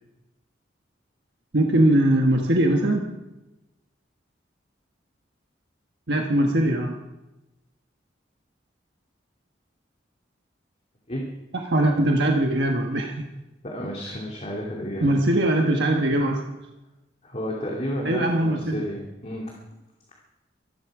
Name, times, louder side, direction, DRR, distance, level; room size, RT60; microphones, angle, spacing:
voice 1, 1.5-3.1 6.1-7.0 11.5-13.3 15.0-16.4 18.0-18.8, right 1 dB, 65° right, 2 dB, 1.4 m, -21 dB
voice 2, 13.6-15.2 17.2-19.6, equal, 35° left, -2 dB, 2.5 m, -32 dB
24.5 x 11.0 x 4.9 m, 0.99 s
head